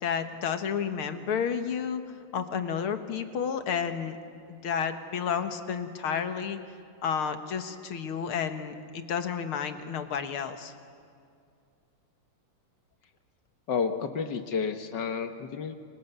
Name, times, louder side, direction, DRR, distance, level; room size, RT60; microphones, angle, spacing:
voice 1, 0.0-2.0 2.3-4.2 4.5-6.6 7.0-10.7, left 7 dB, 80° left, 8 dB, 2.3 m, -31 dB
voice 2, 13.7-15.7, left 6 dB, 60° left, 7 dB, 1.8 m, -30 dB
29.5 x 24.0 x 8.2 m, 2.3 s
omnidirectional pair, 2.3 m